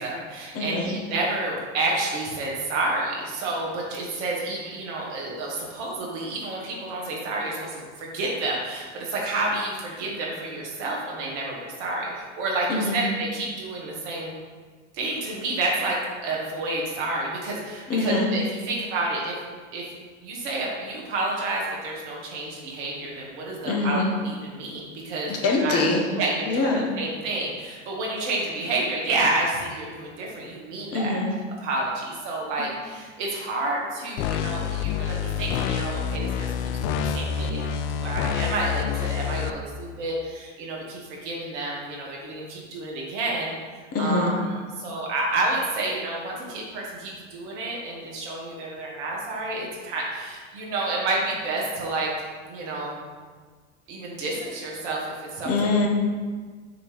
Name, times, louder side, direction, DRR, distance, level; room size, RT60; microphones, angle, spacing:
voice 1, 0.0-14.3 14.9-19.4 19.7-19.8 20.2-25.3 25.6-25.8 26.2-31.2 31.6-43.6 44.0-44.4 44.8-52.1 52.5-53.0 53.9-55.7, right 2 dB, 70° right, -3 dB, 1.9 m, -29 dB
voice 2, 0.5-0.9 12.7-13.0 17.9-18.3 23.6-24.1 25.3-26.1 26.4-26.9 30.9-31.3 43.9-44.3 55.4-55.9, left 3 dB, 40° left, 0 dB, 1.4 m, -24 dB
sound 1, 34.2-39.5, left 8 dB, 70° left, 0.5 m, -27 dB
6.8 x 3.3 x 5.1 m, 1.5 s
hypercardioid pair, 85°, 36 cm